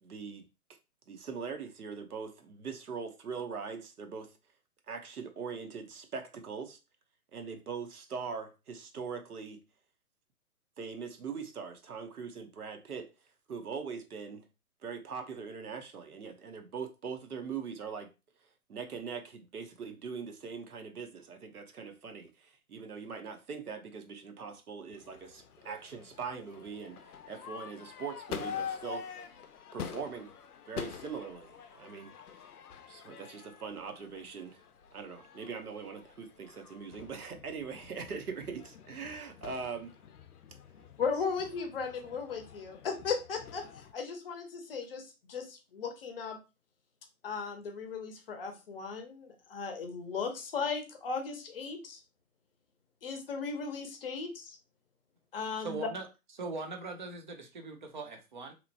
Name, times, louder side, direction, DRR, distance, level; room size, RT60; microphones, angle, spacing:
voice 1, 0.0-0.4 1.1-4.3 4.9-6.8 7.3-9.6 10.8-13.1 13.5-14.4 14.8-18.1 18.7-29.2 29.7-30.3 30.7-32.5 32.9-34.6 34.9-39.9, right 5 dB, 85° right, 0.8 m, -41 dB
Crowd / Fireworks, 24.9-43.9, left 7 dB, 85° left, 0.5 m, -46 dB
voice 2, 41.0-45.0 45.3-46.4 47.2-52.0 53.0-54.6 55.3-55.9, left 5 dB, 40° left, 0.6 m, -36 dB
voice 3, 55.6-56.1 56.4-58.5, right 3 dB, 35° right, 0.4 m, -40 dB
2.9 x 2.1 x 2.6 m
figure-of-eight pair, 130°, 44 cm